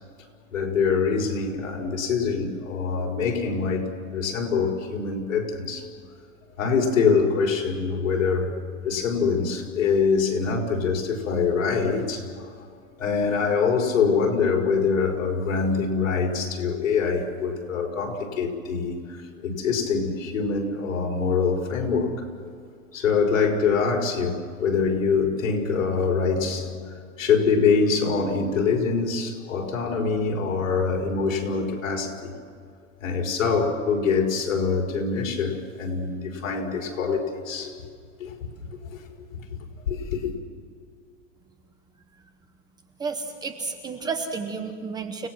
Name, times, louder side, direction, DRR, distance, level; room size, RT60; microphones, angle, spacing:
voice 1, 0.5-5.9 6.6-12.4 13.0-22.3 22.9-26.9 27.2-32.3 33.0-37.8 38.2-38.3 38.8-39.0 39.9-40.3, left 5 dB, 75° left, 1 dB, 5.5 m, -24 dB
voice 2, 43.0-45.3, right 4 dB, 10° right, 7 dB, 0.8 m, -31 dB
30.0 x 18.5 x 6.3 m, 2.2 s
supercardioid pair, 165°, 40 cm